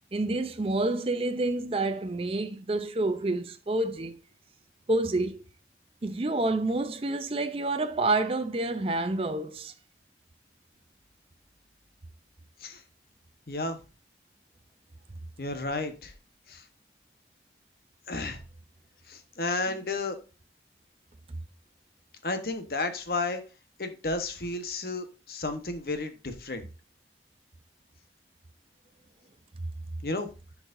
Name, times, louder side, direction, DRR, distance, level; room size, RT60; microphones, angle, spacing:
voice 1, 0.1-4.2 4.9-5.4 6.0-9.7, right 2 dB, 30° right, 0.5 m, -28 dB
voice 2, 13.5-13.8 15.4-16.1 16.5-16.6 18.1-18.4 19.1-20.2 22.2-23.4 23.8-26.6 30.0-30.3, left 3 dB, 55° left, 1.0 m, -32 dB
10.0 x 4.7 x 2.6 m
head